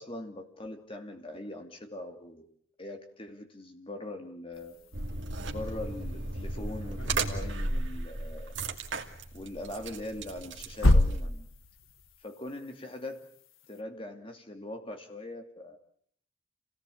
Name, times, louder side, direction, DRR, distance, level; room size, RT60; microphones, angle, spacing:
voice 1, 0.0-2.5 2.8-4.8 5.4-8.5 9.3-11.5 12.2-13.2 13.7-15.8, left 1 dB, 25° left, 5 dB, 2.7 m, -41 dB
sound 1, 4.5-13.8, left 1 dB, 80° left, 1.5 m, -33 dB
sound 2, 4.9-11.3, right 2 dB, 65° right, 2.4 m, -35 dB
28.0 x 18.0 x 8.5 m, 0.64 s
head